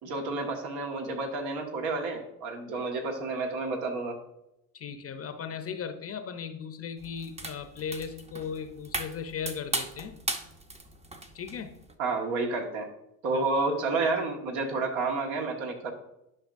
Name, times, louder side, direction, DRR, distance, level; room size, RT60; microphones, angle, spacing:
voice 1, 0.0-4.2 12.0-12.9 13.2-15.9, right 3 dB, 60° right, 2 dB, 1.9 m, -30 dB
voice 2, 4.7-10.2 11.3-11.8 13.3-13.4, left 7 dB, 30° left, 8 dB, 0.8 m, -37 dB
sound 1, 7.0-11.9, right 2 dB, 15° right, 0.9 m, -37 dB
11.0 x 5.7 x 2.6 m, 0.84 s
hypercardioid pair, 80°, 49 cm